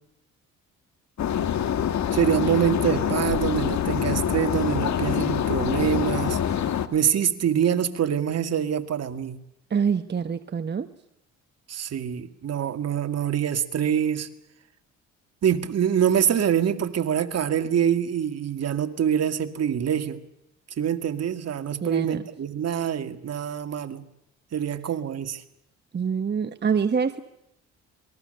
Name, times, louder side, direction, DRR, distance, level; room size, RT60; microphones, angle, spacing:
sound 1, 1.2-6.9, left 9 dB, 65° left, 2.0 m, -25 dB
voice 1, 2.1-6.4 6.9-9.4 11.7-14.3 15.4-20.2 20.8-24.0 24.5-25.4, right 9 dB, 55° right, 8 dB, 2.2 m, -25 dB
voice 2, 9.7-10.9 21.8-22.2 25.9-27.2, right 6 dB, 35° right, 9 dB, 1.2 m, -25 dB
28.0 x 21.5 x 6.8 m, 0.82 s
cardioid pair, 90°, 30 cm